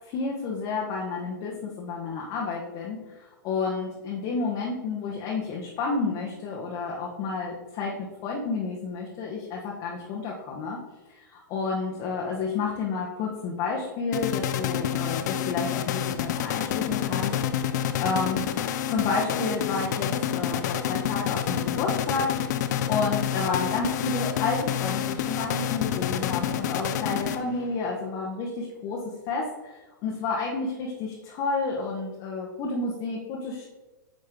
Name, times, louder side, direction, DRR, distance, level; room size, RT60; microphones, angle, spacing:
voice 1, 0.1-10.8 11.1-18.4 18.9-22.3 22.6-33.7, left 4 dB, 40° left, -2 dB, 1.1 m, -30 dB
sound 1, 14.1-27.8, left 10 dB, 55° left, 0.5 m, -28 dB
9.0 x 3.2 x 3.7 m, 1.1 s
hypercardioid pair, 110°, 11 cm